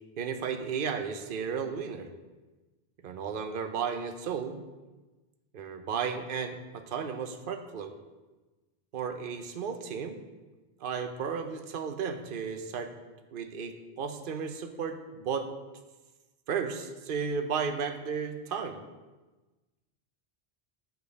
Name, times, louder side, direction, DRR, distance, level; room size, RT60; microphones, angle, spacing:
voice 1, 0.2-2.1 3.0-4.6 5.5-7.9 8.9-10.2 10.8-12.9 13.3-15.5 16.5-18.8, right 6 dB, 60° right, 7 dB, 0.9 m, -34 dB
9.1 x 5.2 x 6.4 m, 1.2 s
omnidirectional pair, 1.1 m